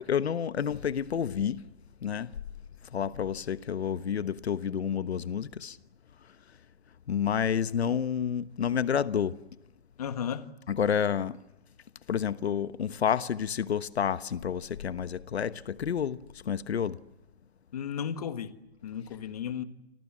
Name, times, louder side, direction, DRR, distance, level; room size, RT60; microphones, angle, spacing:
voice 1, 0.0-1.6 2.0-2.3 2.9-5.8 7.1-9.4 10.7-11.4 12.1-16.2 16.4-17.0, left 8 dB, 80° left, 1.2 m, -29 dB
voice 2, 10.0-10.6 17.7-18.5 18.8-19.6, left 8 dB, 35° left, 1.6 m, -34 dB
29.5 x 25.0 x 7.4 m
hypercardioid pair, 175°, 32 cm